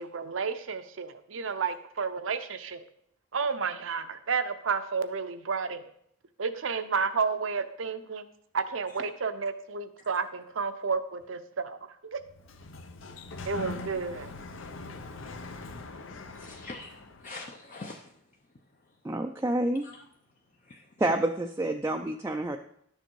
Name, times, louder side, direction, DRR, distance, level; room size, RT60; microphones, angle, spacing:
voice 1, 0.0-2.8 3.3-5.8 6.4-8.3 8.5-11.8 12.1-12.2 13.4-14.3, right 5 dB, 75° right, 10 dB, 0.7 m, -31 dB
Sliding door, 12.2-17.3, left 3 dB, 70° left, 0.8 m, -42 dB
voice 2, 16.3-18.1 19.8-20.0 20.7-20.8, left 3 dB, 40° left, 2 dB, 0.6 m, -44 dB
voice 3, 19.0-19.9 21.0-22.6, right 1 dB, 15° right, 3 dB, 0.4 m, -28 dB
11.0 x 6.6 x 4.6 m, 0.70 s
head